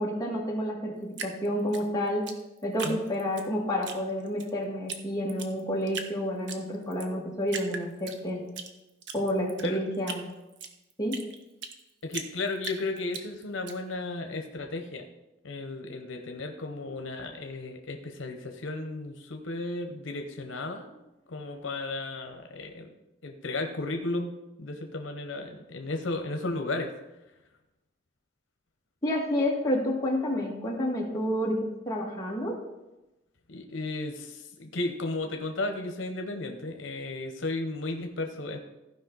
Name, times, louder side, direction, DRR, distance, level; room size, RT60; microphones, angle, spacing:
voice 1, 0.0-2.3 2.6-8.4 9.1-10.2 11.0-11.2 29.0-32.6, equal, 20° left, -3 dB, 1.8 m, -29 dB
Drip, 1.1-3.5 3.8-4.5 4.9-5.0 5.3-6.1 6.5-7.1 7.5-8.7 9.0-11.8 12.1-13.7, right 5 dB, 65° right, 0.9 m, -38 dB
voice 2, 12.0-15.0 15.4-20.9 21.3-22.9 23.2-24.3 24.6-26.9 33.5-38.6, left 2 dB, 90° left, 5 dB, 0.9 m, -34 dB
15.0 x 5.2 x 4.0 m, 1.0 s
head